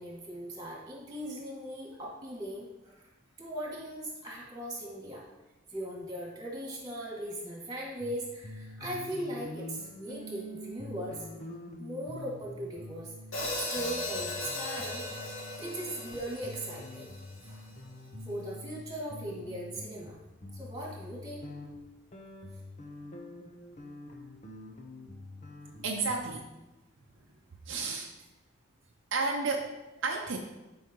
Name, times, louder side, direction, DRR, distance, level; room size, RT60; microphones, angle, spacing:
voice 1, 0.0-3.1 3.4-5.2 5.7-11.3 11.8-13.1 13.5-15.0 15.6-17.1 17.4-17.7 18.2-20.2 20.5-21.5, right 1 dB, 20° right, -4 dB, 2.3 m, -39 dB
sound 1, 8.0-8.2 8.4-18.8 19.1-26.2, left 1 dB, 35° left, 0.9 m, -46 dB
Hi-hat, 13.3-17.5, left 2 dB, 70° left, 1.9 m, -37 dB
voice 2, 25.8-26.5 27.7-28.1 29.1-30.4, right 4 dB, 65° right, 1 dB, 0.7 m, -32 dB
11.0 x 5.5 x 3.0 m, 1.0 s
head